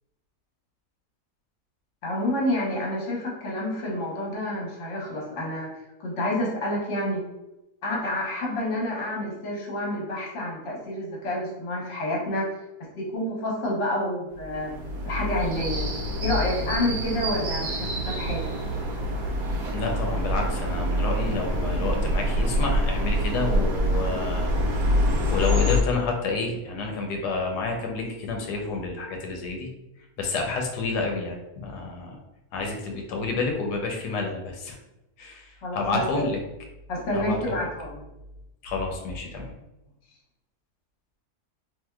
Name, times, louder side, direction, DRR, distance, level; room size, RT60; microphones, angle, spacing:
voice 1, 2.0-7.2 7.8-12.4 13.0-14.7 15.0-15.8 16.2-18.5 35.6-36.3 36.9-38.0, left 1 dB, 50° left, -3 dB, 1.1 m, -29 dB
sound 1, 14.4-25.8, equal, 70° right, 1.1 m, -26 dB
voice 2, 19.7-24.9 25.3-29.7 30.2-32.2 32.5-34.8 35.2-36.4 37.1-37.6 38.6-39.5, left 3 dB, 90° left, 2 dB, 1.2 m, -29 dB
3.5 x 2.8 x 2.2 m, 0.97 s
omnidirectional pair, 1.7 m